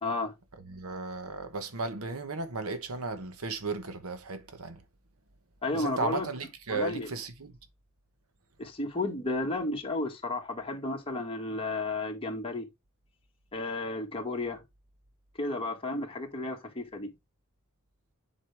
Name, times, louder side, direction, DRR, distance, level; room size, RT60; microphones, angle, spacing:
voice 1, 0.0-0.3 5.6-6.3 6.7-7.1 8.6-12.7 13.5-14.6 15.4-17.1, left 2 dB, 25° left, 1.7 m, -33 dB
voice 2, 0.6-4.8 5.7-7.5, right 3 dB, 75° right, 1.1 m, -35 dB
7.8 x 4.8 x 3.4 m
head